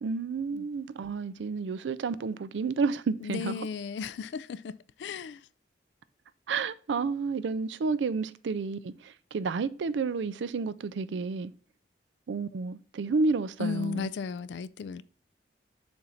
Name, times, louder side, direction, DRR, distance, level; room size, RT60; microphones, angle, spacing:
voice 1, 0.0-3.6 6.5-11.5 12.3-14.1, right 4 dB, 85° right, 0.4 m, -31 dB
voice 2, 3.2-5.4 13.6-15.0, left 6 dB, 75° left, 0.3 m, -35 dB
7.0 x 2.6 x 5.5 m
head